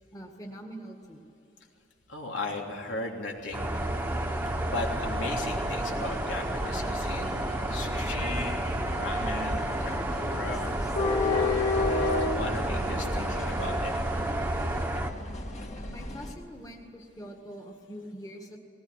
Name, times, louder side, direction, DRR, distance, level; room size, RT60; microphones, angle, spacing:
voice 1, 0.1-1.3 13.0-13.4 14.2-14.3 15.9-18.6, equal, 20° left, 2 dB, 1.9 m, -44 dB
voice 2, 2.1-3.9 4.6-7.4 7.7-8.6 8.9-10.7 11.3-13.9, left 2 dB, 85° left, 0 dB, 3.2 m, -37 dB
sound 1, 3.5-15.1, right 1 dB, 10° right, 1.3 m, -31 dB
sound 2, 3.7-14.8, right 2 dB, 50° right, 0.9 m, -41 dB
sound 3, 4.3-16.3, left 3 dB, 40° left, 2.0 m, -33 dB
19.5 x 19.0 x 9.9 m, 2.9 s
head